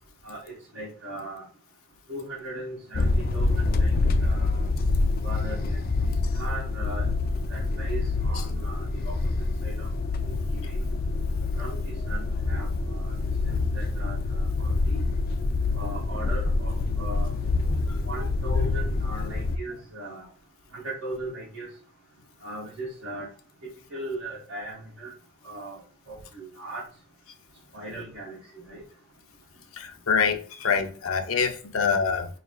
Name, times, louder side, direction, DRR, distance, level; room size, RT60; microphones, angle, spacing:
voice 1, 0.2-1.4 2.1-4.7 5.2-7.1 7.5-9.2 9.6-9.9 10.2-10.8 11.6-13.2 13.5-15.0 15.8-17.3 18.0-20.3 20.7-21.7 22.4-23.3 23.6-25.1 25.4-25.8 26.1-26.8 27.7-28.4 28.7-28.8, right 2 dB, 80° right, 1.8 m, -38 dB
sound 1, 2.9-19.6, left 3 dB, 45° left, 0.4 m, -26 dB
voice 2, 29.7-32.3, left 6 dB, 85° left, 0.6 m, -25 dB
4.9 x 3.2 x 2.4 m
head